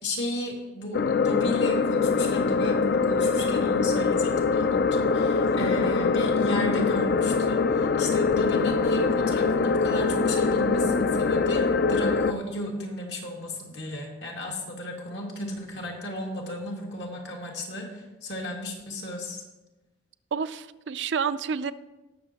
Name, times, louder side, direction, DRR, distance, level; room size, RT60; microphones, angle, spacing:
voice 1, 0.0-19.4, left 1 dB, 80° left, -1 dB, 2.2 m, -34 dB
sound 1, 0.9-12.3, left 4 dB, 60° left, 0.4 m, -23 dB
voice 2, 20.3-21.7, right 6 dB, 85° right, 13 dB, 0.4 m, -29 dB
18.5 x 6.4 x 2.9 m, 1.1 s
head